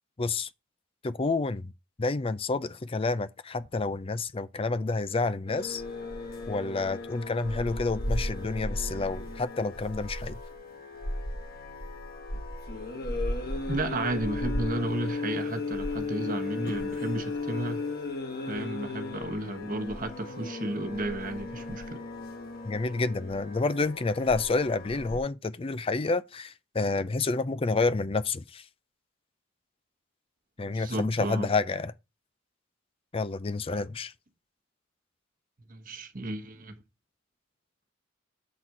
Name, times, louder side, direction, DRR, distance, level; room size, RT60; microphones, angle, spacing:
voice 1, 0.2-0.5 1.0-1.7 2.0-5.8 6.5-10.4 22.6-28.6 30.6-31.9 33.1-34.1, left 3 dB, 30° left, 0.5 m, -29 dB
sound 1, 5.5-25.2, left 2 dB, 50° left, 1.6 m, -35 dB
voice 2, 13.7-17.8 18.5-22.0 30.7-31.5 35.7-36.8, right 2 dB, 45° right, 1.2 m, -33 dB
7.7 x 4.2 x 5.8 m
head